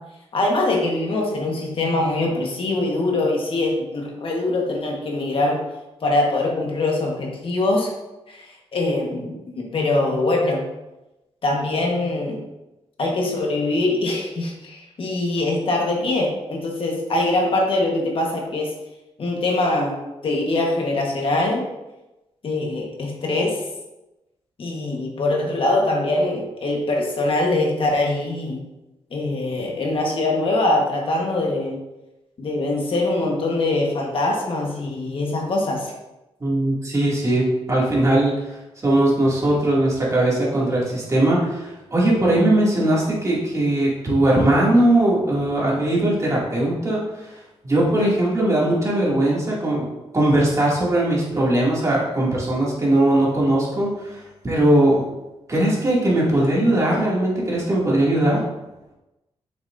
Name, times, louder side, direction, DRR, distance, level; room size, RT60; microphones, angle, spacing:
voice 1, 0.3-5.6 6.0-7.9 8.3-10.6 11.4-12.4 13.0-18.7 19.2-19.9 20.2-21.6 22.4-23.6 24.6-28.6 29.1-31.8 32.4-35.9, left 2 dB, 55° left, -1 dB, 1.4 m, -23 dB
voice 2, 36.4-38.3 38.8-47.3 47.6-49.8 50.1-55.0 55.5-58.4, right 1 dB, 30° right, -5 dB, 2.4 m, -19 dB
7.2 x 6.0 x 2.6 m, 0.99 s
cardioid pair, 105°, 11 cm